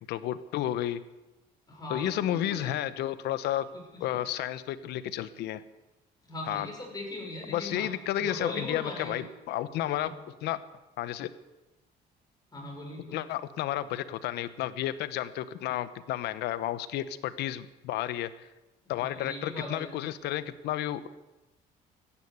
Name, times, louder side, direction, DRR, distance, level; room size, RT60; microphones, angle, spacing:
voice 1, 0.1-1.0 1.9-3.7 4.0-5.6 6.4-6.7 7.5-10.1 10.4-10.6 11.0-11.3 13.1-18.3 18.9-21.1, left 12 dB, 80° left, 14 dB, 1.0 m, -32 dB
voice 2, 1.7-2.2 2.5-2.8 3.9-4.2 6.2-7.9 8.2-9.3 10.0-10.1 12.5-13.2 19.0-20.0, left 2 dB, 25° left, -1 dB, 6.4 m, -39 dB
15.5 x 10.5 x 8.2 m, 1.1 s
cardioid pair, 110°, 17 cm